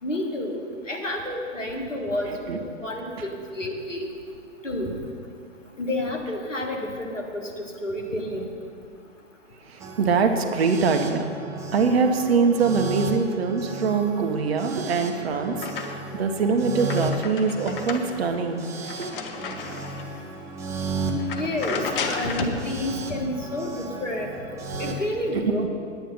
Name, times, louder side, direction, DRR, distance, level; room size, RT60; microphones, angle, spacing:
voice 1, 0.0-4.1 4.6-4.9 5.8-8.4 21.3-24.3 24.8-25.7, left 1 dB, 85° left, 1 dB, 1.8 m, -30 dB
voice 2, 9.7-11.3 11.7-18.7 19.0-19.1, right 5 dB, 55° right, 5 dB, 1.2 m, -23 dB
sound 1, 9.8-24.9, right 2 dB, 10° right, 0.4 m, -34 dB
sound 2, 14.7-16.2 16.6-20.2 20.7-20.8 21.2-22.6, left 5 dB, 45° left, 1.0 m, -34 dB
10.0 x 9.3 x 5.5 m, 2.3 s
figure-of-eight pair, 110°, 37 cm